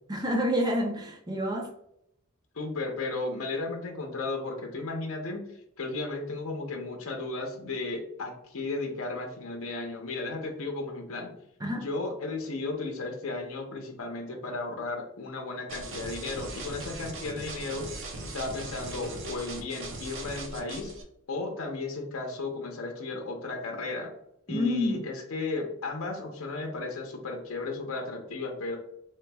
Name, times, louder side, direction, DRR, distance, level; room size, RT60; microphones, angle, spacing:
voice 1, 0.1-1.7 11.6-11.9 24.5-25.0, equal, 20° right, 0.5 m, -28 dB
voice 2, 2.5-5.5 5.8-11.3 11.7-20.9 21.3-24.1 24.5-28.8, left 3 dB, 70° left, 0.7 m, -34 dB
sound 1, 15.7-21.0, right 2 dB, 60° right, 0.6 m, -39 dB
3.3 x 3.0 x 2.2 m
head